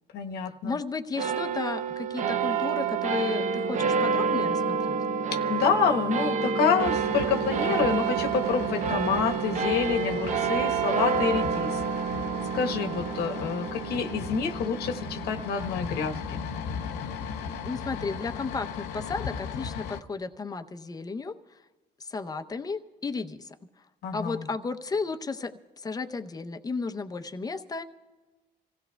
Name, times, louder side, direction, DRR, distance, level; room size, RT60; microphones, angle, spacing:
voice 1, 0.1-0.8 5.3-12.1 12.5-16.4 24.0-24.5, left 6 dB, 70° left, 5 dB, 1.1 m, -28 dB
voice 2, 0.6-5.0 17.6-21.6 22.0-23.6 24.1-27.8, left 4 dB, 20° left, 8 dB, 0.7 m, -34 dB
sound 1, 1.2-17.9, right 6 dB, 45° right, 0.7 m, -29 dB
sound 2, 6.8-20.0, left 7 dB, 85° left, 0.7 m, -37 dB
26.5 x 16.5 x 2.3 m, 1.3 s
cardioid pair, 110°, 17 cm